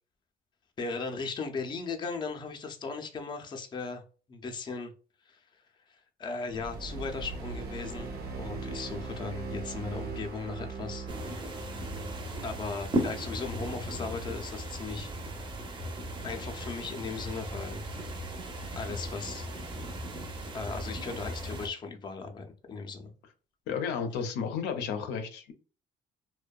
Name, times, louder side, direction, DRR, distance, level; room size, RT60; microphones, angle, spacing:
voice 1, 0.8-4.0 4.3-4.9 5.3-5.4 5.9-8.1 8.4-11.1 12.4-15.1 16.2-17.8 18.8-19.5 20.5-23.1, left 4 dB, 25° left, 0.4 m, -37 dB
sound 1, 6.5-17.0, right 4 dB, 70° right, 0.6 m, -41 dB
sound 2, 11.1-21.7, right 1 dB, 30° right, 0.5 m, -37 dB
voice 2, 23.7-25.5, left 6 dB, 85° left, 0.5 m, -32 dB
2.6 x 2.1 x 2.2 m
cardioid pair, 110°, 17 cm